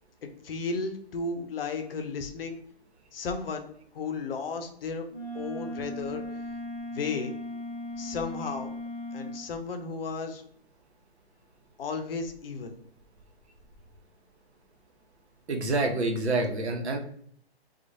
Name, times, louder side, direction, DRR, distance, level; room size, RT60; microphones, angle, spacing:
voice 1, 0.4-2.6 3.1-3.7 3.9-5.0 5.3-6.2 6.8-7.3 8.0-8.7 9.1-10.4 11.8-12.8, left 4 dB, 60° left, 6 dB, 0.7 m, -34 dB
Wind instrument woodwind instrument, 5.1-9.5, left 1 dB, 20° left, 0.5 m, -37 dB
voice 2, 15.5-17.0, right 2 dB, 85° right, 4 dB, 0.8 m, -27 dB
2.9 x 2.4 x 2.6 m, 0.62 s
hypercardioid pair, 135°, 32 cm